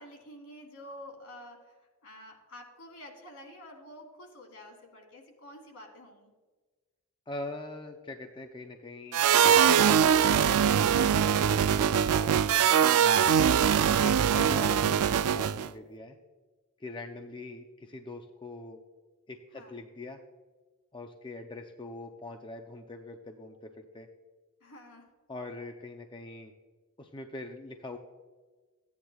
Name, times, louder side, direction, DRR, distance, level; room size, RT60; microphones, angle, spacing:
voice 1, 0.0-1.8 2.0-6.3 19.5-19.8 24.6-25.1, left 1 dB, 70° left, 1 dB, 2.5 m, -49 dB
voice 2, 7.3-9.2 9.7-12.9 14.0-16.2 16.8-18.8 19.3-20.2 20.9-24.1 25.3-26.5 27.0-28.0, left 2 dB, 20° left, 4 dB, 0.5 m, -43 dB
sound 1, 9.1-15.7, right 8 dB, 85° right, 0.4 m, -22 dB
15.0 x 9.5 x 2.3 m, 1.3 s
head